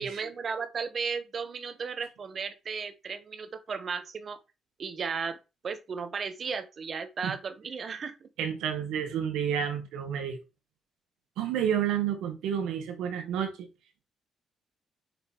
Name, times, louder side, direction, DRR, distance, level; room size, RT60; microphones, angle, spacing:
voice 1, 0.0-4.4 4.8-5.4 5.6-8.3, right 5 dB, 45° right, 1.2 m, -35 dB
voice 2, 8.4-10.4 11.4-13.7, right 9 dB, 90° right, 1.7 m, -30 dB
5.9 x 5.5 x 4.6 m
cardioid pair, 90°, 0 cm